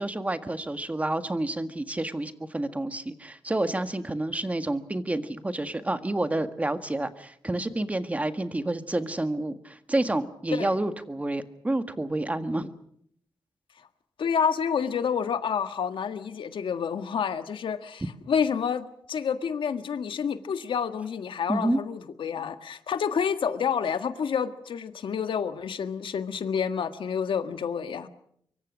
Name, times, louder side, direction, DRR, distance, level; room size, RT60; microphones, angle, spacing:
voice 1, 0.0-12.7 21.5-21.8, right 1 dB, 15° right, 9 dB, 1.6 m, -29 dB
voice 2, 14.2-28.1, left 7 dB, 80° left, 9 dB, 1.6 m, -29 dB
25.0 x 23.5 x 6.3 m, 0.69 s
wide cardioid pair, 120°, 9 cm